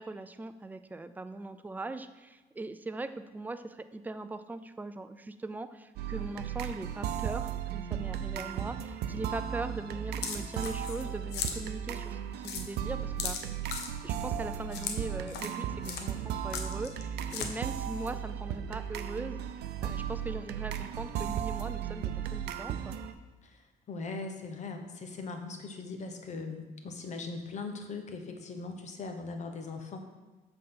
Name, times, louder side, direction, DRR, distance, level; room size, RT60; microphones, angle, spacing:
voice 1, 0.0-12.2 12.4-13.4 14.0-19.4 19.8-23.0, right 2 dB, 10° right, 10 dB, 0.4 m, -40 dB
sound 1, 6.0-23.1, right 9 dB, 75° right, 0.5 m, -36 dB
sound 2, 10.2-11.0 11.3-11.6 12.0-12.1 12.4-12.6 13.2-13.9 14.7-15.0 15.3-15.5 15.8-16.0 16.5-17.0 17.3-17.5, left 6 dB, 85° left, 0.9 m, -36 dB
voice 2, 23.4-30.0, left 3 dB, 45° left, 5 dB, 1.0 m, -40 dB
7.5 x 3.9 x 5.8 m, 1.2 s
cardioid pair, 110°, 17 cm